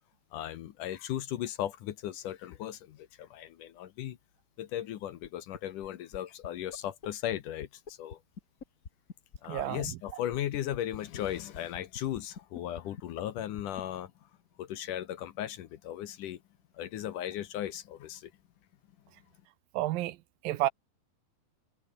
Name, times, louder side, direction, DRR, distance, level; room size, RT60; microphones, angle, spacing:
voice 1, 0.3-4.2 4.6-8.2 9.4-14.3 14.6-16.4 16.7-18.3, left 12 dB, 65° left, 2.4 m, -37 dB
sound 1, 5.2-5.3 5.5-5.9 6.1-6.2 6.4-6.5 6.7-6.8 7.0-7.1 7.3-7.4 7.6-13.8, left 5 dB, 35° left, 1.4 m, -43 dB
voice 2, 9.5-9.8 19.7-20.2 20.4-20.7, right 15 dB, 80° right, 2.5 m, -30 dB
omnidirectional pair, 4.3 m